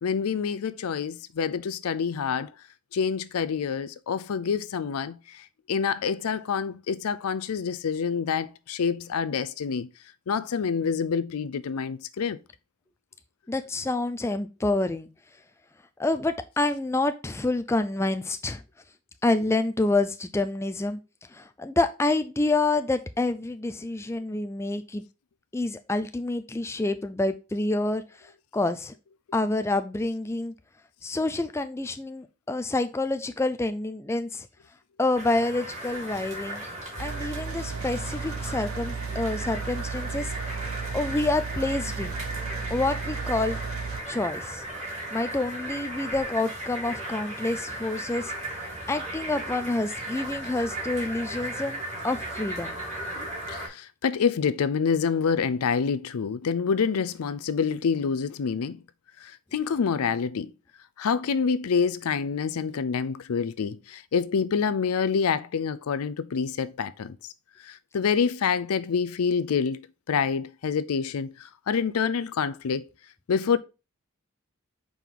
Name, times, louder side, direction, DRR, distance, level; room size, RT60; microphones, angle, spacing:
voice 1, 0.0-2.5 2.9-5.2 5.7-9.9 10.3-12.4 53.5-58.8 59.5-60.5 61.0-67.2 67.7-69.8 70.1-72.8 73.3-73.6, left 6 dB, 85° left, 0.5 m, -27 dB
voice 2, 13.5-15.1 16.0-18.6 19.2-21.0 21.3-25.0 25.5-28.0 28.5-28.9 29.3-30.5 31.0-34.5 35.0-36.6 37.0-40.3 40.9-42.2 42.7-43.6 44.1-44.6 45.1-48.3 48.9-52.8, left 2 dB, 10° left, 0.4 m, -27 dB
sound 1, 35.1-53.7, right 1 dB, 30° right, 2.4 m, -36 dB
sound 2, 37.0-44.0, right 5 dB, 75° right, 0.8 m, -34 dB
5.3 x 4.6 x 3.8 m
head